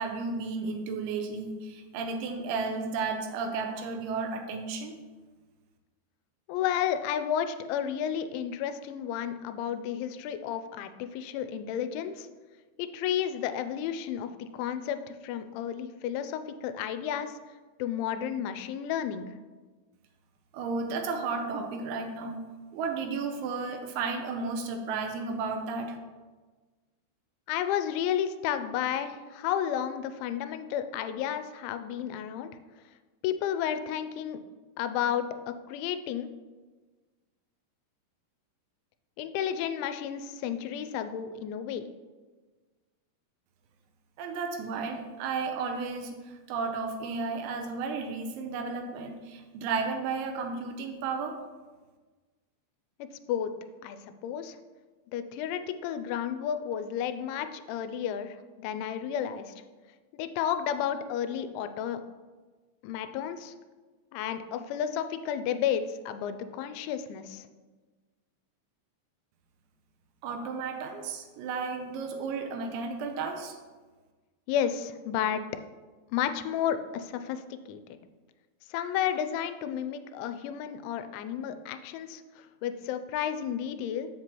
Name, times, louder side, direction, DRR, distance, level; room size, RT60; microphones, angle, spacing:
voice 1, 0.0-5.0 20.5-22.4 22.7-26.0 44.2-51.4 70.2-73.6, right 4 dB, 80° right, 4 dB, 3.0 m, -33 dB
voice 2, 6.5-12.3 12.8-17.4 17.8-19.3 27.5-32.5 33.2-34.4 34.8-36.3 39.2-41.8 53.0-53.5 53.8-54.6 55.1-59.5 60.1-62.0 62.8-63.5 64.1-67.5 74.5-75.4 76.1-77.8 78.7-84.1, left 9 dB, 85° left, 10 dB, 2.9 m, -32 dB
7.9 x 7.8 x 2.9 m, 1.3 s
omnidirectional pair, 5.4 m